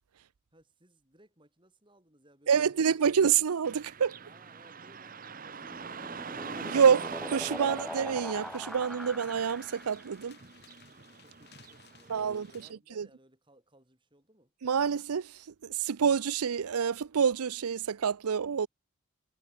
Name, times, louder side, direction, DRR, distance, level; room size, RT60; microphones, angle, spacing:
voice 1, 0.5-3.2 4.2-6.8 10.8-14.5, right 1 dB, 20° right, 5.3 m, -63 dB
voice 2, 2.5-4.2 6.6-10.4 12.1-12.5 13.0-13.1 14.6-18.7, right 7 dB, 90° right, 0.5 m, -27 dB
Car passing by / Traffic noise roadway noise, 3.6-12.7, right 5 dB, 40° right, 1.1 m, -44 dB
sound 1, 5.4-10.2, equal, ahead, 0.6 m, -42 dB
sound 2, 7.7-12.7, left 9 dB, 45° left, 3.8 m, -60 dB
head